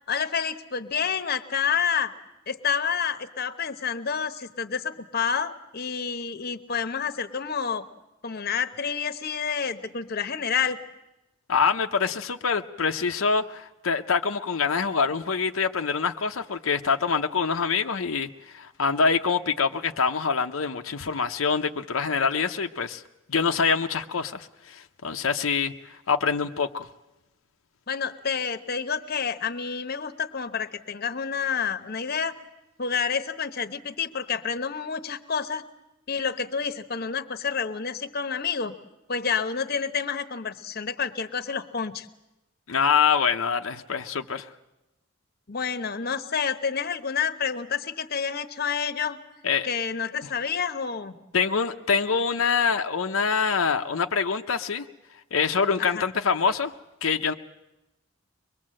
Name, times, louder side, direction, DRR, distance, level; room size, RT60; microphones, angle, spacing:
voice 1, 0.1-2.1 2.5-7.8 8.2-10.8 27.9-32.4 32.8-35.6 36.1-38.8 39.1-42.1 45.5-49.2 49.6-51.2 55.8-56.1, left 6 dB, 50° left, 11 dB, 1.0 m, -29 dB
voice 2, 11.5-23.0 23.3-25.7 26.1-26.9 42.7-44.5 49.4-49.7 51.3-54.8 55.3-56.7 57.0-57.3, left 5 dB, 85° left, 5 dB, 0.8 m, -25 dB
23.5 x 21.5 x 7.6 m, 0.98 s
head